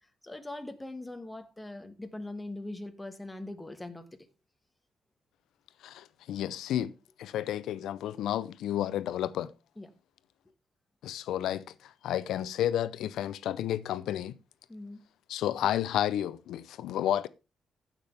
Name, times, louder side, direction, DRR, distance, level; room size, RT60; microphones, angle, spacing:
voice 1, 0.0-4.3 9.8-10.0 14.7-15.0, left 2 dB, 10° left, 1.4 m, -42 dB
voice 2, 5.8-6.9 7.2-9.5 11.0-14.3 15.3-17.3, left 11 dB, 85° left, 0.5 m, -31 dB
15.5 x 5.9 x 3.3 m
cardioid pair, 90°, 0 cm